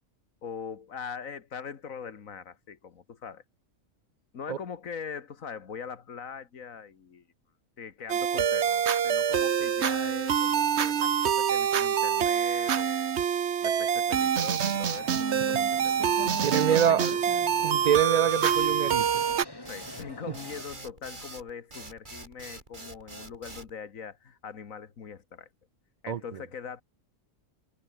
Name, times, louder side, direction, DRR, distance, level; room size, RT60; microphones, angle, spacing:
voice 1, 0.4-3.4 4.3-7.3 7.8-13.1 13.6-16.1 16.5-17.2 19.6-25.5 26.0-26.8, left 6 dB, 85° left, 1.9 m, -42 dB
sound 1, 8.1-19.4, right 8 dB, 60° right, 1.2 m, -26 dB
sound 2, 14.7-20.6, left 1 dB, 15° left, 2.2 m, -42 dB
voice 2, 16.4-17.1 17.6-19.1 26.1-26.2, right 9 dB, 85° right, 0.3 m, -25 dB
sound 3, 18.3-23.7, right 2 dB, 35° right, 3.5 m, -44 dB
omnidirectional pair, 1.4 m